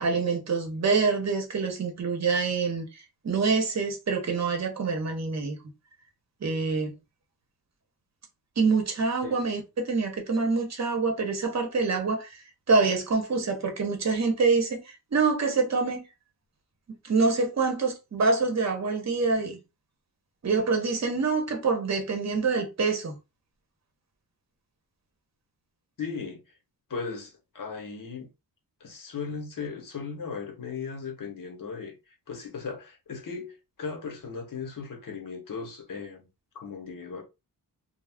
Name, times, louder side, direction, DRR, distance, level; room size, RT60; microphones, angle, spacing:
voice 1, 0.0-2.9 3.2-5.6 6.4-6.9 8.6-14.8 15.1-16.0 17.0-19.6 20.4-23.1, right 4 dB, 40° right, 0.8 m, -26 dB
voice 2, 26.0-26.4 26.9-28.3 28.8-31.9 32.3-36.3 36.5-37.2, left 5 dB, 50° left, 0.9 m, -37 dB
2.4 x 2.0 x 3.4 m
wide cardioid pair, 110°, 41 cm